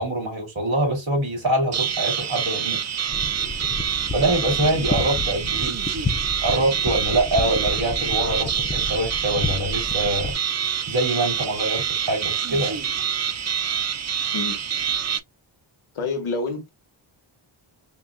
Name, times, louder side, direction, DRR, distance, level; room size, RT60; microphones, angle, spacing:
voice 1, 0.0-2.8 4.1-5.8 6.4-10.3 10.9-12.8, right 1 dB, 65° right, 3.0 m, -24 dB
sound 1, 1.7-15.2, right 8 dB, 35° right, 0.4 m, -26 dB
sound 2, 3.1-10.3, left 3 dB, 20° left, 0.5 m, -31 dB
voice 2, 15.9-16.7, left 3 dB, 75° left, 1.5 m, -27 dB
5.8 x 2.6 x 2.2 m
wide cardioid pair, 100°, 50 cm